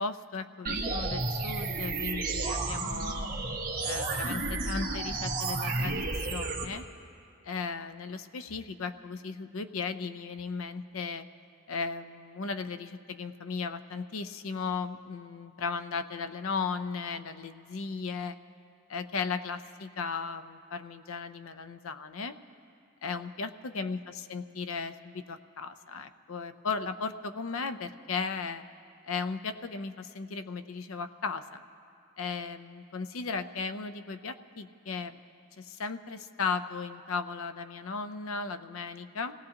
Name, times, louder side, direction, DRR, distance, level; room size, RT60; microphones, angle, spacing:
voice 1, 0.0-3.3 3.8-6.8 7.4-11.3 11.7-18.4 18.9-22.4 23.0-28.6 29.0-31.6 32.2-35.2 35.6-39.3, left 4 dB, 75° left, 10 dB, 0.6 m, -36 dB
sound 1, 0.6-6.6, right 3 dB, 45° right, 1.6 m, -32 dB
27.5 x 17.5 x 2.9 m, 2.5 s
head